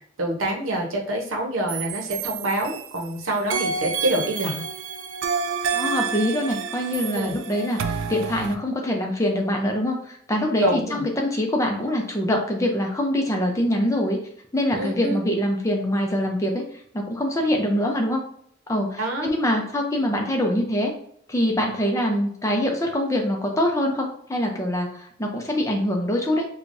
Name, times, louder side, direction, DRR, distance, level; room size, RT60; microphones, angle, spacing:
voice 1, 0.2-4.6 7.1-7.3 10.6-11.0 14.7-15.2 19.0-19.3, right 1 dB, 90° right, 1 dB, 0.8 m, -26 dB
sound 1, 1.7-3.1 3.5-8.6, right 6 dB, 65° right, 0.3 m, -29 dB
voice 2, 5.7-14.2 14.5-16.6 16.9-18.2 18.7-20.9 21.3-26.4, left 1 dB, 15° left, 1 dB, 0.5 m, -24 dB
4.9 x 2.3 x 2.6 m, 0.67 s
head